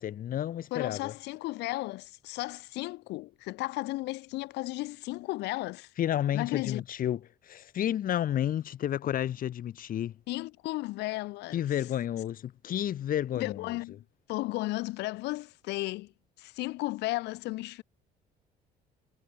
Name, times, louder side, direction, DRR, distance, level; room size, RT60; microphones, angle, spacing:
voice 1, 0.0-1.1 6.0-10.1 11.5-13.7, left 11 dB, 55° left, 2.5 m, -31 dB
voice 2, 0.7-5.9 6.3-6.8 10.3-11.6 13.4-14.0 14.3-16.1 16.4-17.8, left 20 dB, 90° left, 3.0 m, -34 dB
cardioid pair, 110°, 17 cm